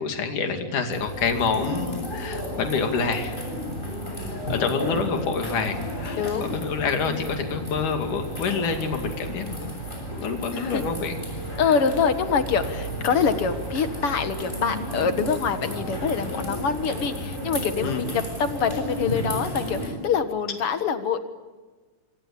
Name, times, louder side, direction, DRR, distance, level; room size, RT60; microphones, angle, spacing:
voice 1, 0.0-3.3 4.2-9.8 10.1-11.2 11.5-11.8 17.8-18.1, left 5 dB, 70° left, 4 dB, 4.0 m, -27 dB
sound 1, 0.9-19.9, equal, 15° left, 7.4 m, -33 dB
voice 2, 6.1-6.7 10.5-10.8 11.6-21.2, left 6 dB, 50° left, 9 dB, 2.2 m, -25 dB
26.5 x 26.0 x 8.6 m, 1.3 s
omnidirectional pair, 3.7 m